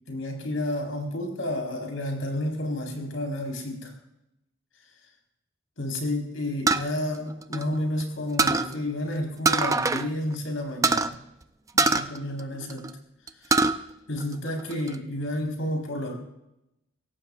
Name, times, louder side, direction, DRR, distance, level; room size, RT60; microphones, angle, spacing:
voice 1, 0.1-3.9 5.8-11.2 11.7-12.9 13.4-13.7 14.1-16.2, left 1 dB, 80° left, 2 dB, 4.2 m, -31 dB
sound 1, 6.7-8.0 8.4-8.7 9.4-10.1 10.3-10.4 10.8-11.1 11.8-12.9 13.3-13.8 14.2-14.9, right 3 dB, 15° right, 0.5 m, -23 dB
23.0 x 17.5 x 2.4 m, 0.86 s
head